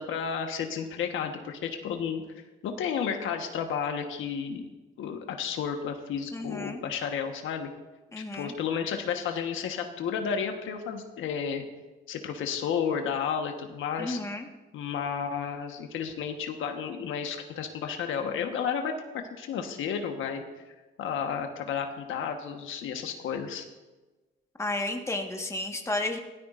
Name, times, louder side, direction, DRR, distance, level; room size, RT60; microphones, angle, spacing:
voice 1, 0.0-2.2 2.6-4.7 5.0-7.7 8.2-11.6 12.1-14.2 14.7-18.9 19.2-20.4 21.0-23.6, left 7 dB, 80° left, 5 dB, 1.3 m, -32 dB
voice 2, 6.3-6.8 8.1-8.6 14.0-14.5 24.6-26.2, left 2 dB, 15° left, 3 dB, 1.5 m, -32 dB
17.0 x 12.5 x 2.6 m, 1.2 s
cardioid pair, 90°, 20 cm